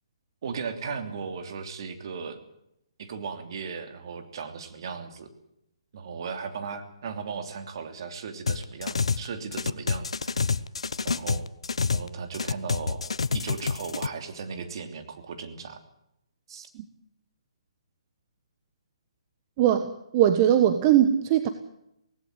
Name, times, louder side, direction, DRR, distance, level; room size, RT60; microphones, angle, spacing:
voice 1, 0.4-2.4 3.0-5.3 5.9-10.5 11.0-11.4 11.9-13.1 13.3-15.8 16.5-16.7, right 5 dB, 50° right, 7 dB, 3.1 m, -36 dB
sound 1, 8.5-9.3 9.5-12.1 12.3-14.1, left 5 dB, 80° left, 0.9 m, -27 dB
voice 2, 19.6-21.5, right 11 dB, 30° right, 9 dB, 1.3 m, -20 dB
18.0 x 16.5 x 9.3 m, 0.79 s
hypercardioid pair, 150°, 3 cm